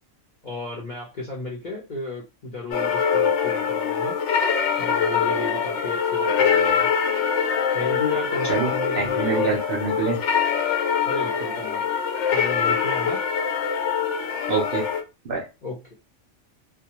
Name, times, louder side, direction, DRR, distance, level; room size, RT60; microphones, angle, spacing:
voice 1, 0.4-4.2 4.8-6.9 7.7-9.6 11.1-11.8 12.3-13.2 15.6-15.9, left 2 dB, 45° left, -2 dB, 0.7 m, -33 dB
sound 1, 2.7-15.0, left 7 dB, 70° left, 0.9 m, -23 dB
voice 2, 8.5-10.2 14.5-14.9 15.2-15.5, right 4 dB, 55° right, -2 dB, 0.7 m, -25 dB
2.3 x 2.2 x 2.9 m, 0.26 s
omnidirectional pair, 1.4 m